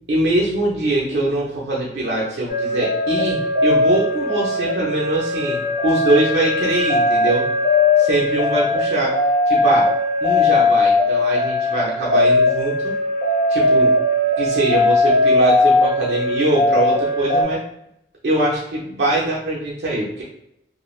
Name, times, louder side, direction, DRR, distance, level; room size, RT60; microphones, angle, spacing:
voice 1, 0.1-7.5 8.0-9.1 9.5-9.9 10.2-12.9 13.5-14.0 14.4-17.6 18.2-20.2, right 1 dB, 80° right, -5 dB, 0.5 m, -22 dB
sound 1, 2.5-17.4, left 2 dB, 45° left, 0.7 m, -18 dB
3.0 x 2.2 x 2.3 m, 0.79 s
head